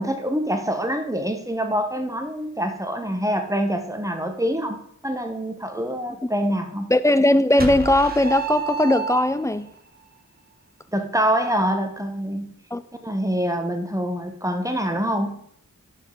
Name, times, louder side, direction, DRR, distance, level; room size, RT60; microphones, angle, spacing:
voice 1, 0.0-6.9 10.9-12.5 13.0-15.4, equal, 10° right, 1.1 m, -25 dB
voice 2, 6.9-9.7 12.7-12.8, left 1 dB, 10° left, 0.4 m, -19 dB
sound 1, 7.6-9.7, right 4 dB, 30° right, 1.2 m, -29 dB
11.0 x 5.4 x 3.8 m
wide cardioid pair, 65°, 31 cm